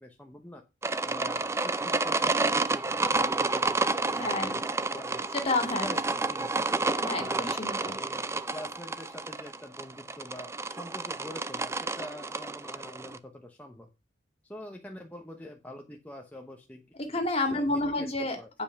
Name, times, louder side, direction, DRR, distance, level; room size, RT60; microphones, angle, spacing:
voice 1, 0.0-0.6 1.0-3.8 4.1-4.6 4.9-5.3 5.7-6.6 7.2-7.5 7.9-13.9 14.4-16.8 17.1-17.2 17.4-18.5, left 1 dB, 10° left, 1 dB, 0.9 m, -45 dB
sound 1, 0.8-13.2, right 3 dB, 15° right, 0.5 m, -30 dB
voice 2, 4.1-4.6 5.3-5.9 7.0-7.9 17.0-18.6, left 2 dB, 35° left, 5 dB, 2.1 m, -30 dB
9.5 x 5.4 x 5.8 m, 0.26 s
head